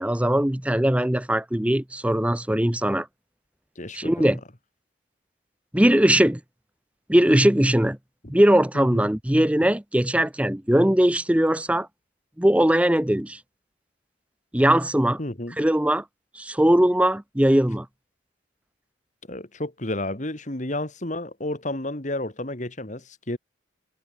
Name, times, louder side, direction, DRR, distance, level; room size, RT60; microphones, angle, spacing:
voice 1, 0.0-3.1 3.9-4.4 5.7-6.4 7.1-8.0 8.3-11.9 12.4-13.4 14.5-15.2 15.6-16.0 16.3-17.9, right 1 dB, 5° right, 0.7 m, -20 dB
voice 2, 3.8-4.3 8.7-9.1 15.2-15.6 19.3-23.4, left 1 dB, 40° left, 2.2 m, -31 dB
head